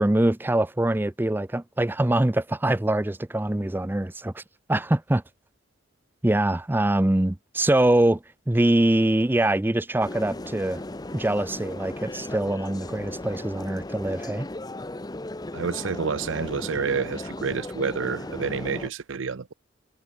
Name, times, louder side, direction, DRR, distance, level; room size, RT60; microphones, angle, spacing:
voice 1, 0.0-4.4 4.7-5.2 6.2-10.8 11.1-14.5, right 1 dB, 10° right, 0.4 m, -23 dB
sound 1, 10.0-18.9, left 1 dB, 20° left, 0.8 m, -36 dB
voice 2, 15.5-19.5, right 5 dB, 65° right, 0.6 m, -29 dB
head